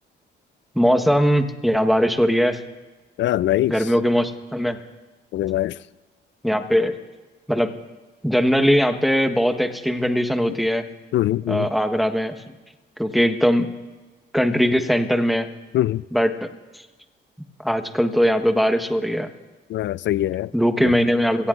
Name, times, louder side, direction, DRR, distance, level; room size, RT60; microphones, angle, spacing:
voice 1, 0.7-2.6 3.7-4.8 6.4-6.9 7.5-7.7 8.2-10.8 11.5-12.3 13.0-13.7 14.3-15.5 16.1-16.5 17.6-19.3 20.5-21.5, equal, ahead, 1.2 m, -20 dB
voice 2, 3.2-3.7 5.3-5.8 11.1-11.7 15.7-16.0 19.7-20.5 20.8-20.9, left 14 dB, 65° left, 0.4 m, -22 dB
29.5 x 17.5 x 2.5 m
cardioid pair, 90°, 20 cm